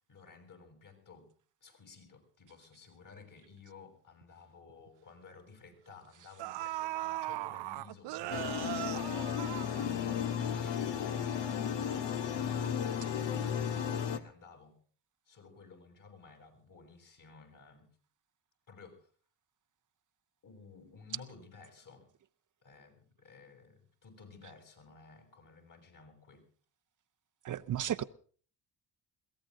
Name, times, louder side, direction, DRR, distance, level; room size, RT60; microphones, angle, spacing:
voice 1, 0.1-1.3 1.6-8.8 9.3-14.8 15.3-17.9 18.7-19.1 20.4-22.1 22.6-26.5, left 4 dB, 45° left, 7.5 m, -55 dB
sound 1, 4.2-4.3 4.7-4.9 5.9-6.0 6.4-10.3 10.7-10.8, right 17 dB, 80° right, 0.7 m, -39 dB
sound 2, 8.3-14.2, left 8 dB, 75° left, 1.9 m, -34 dB
voice 2, 27.4-28.0, right 11 dB, 45° right, 0.8 m, -33 dB
22.0 x 17.5 x 3.8 m
cardioid pair, 95°, 42 cm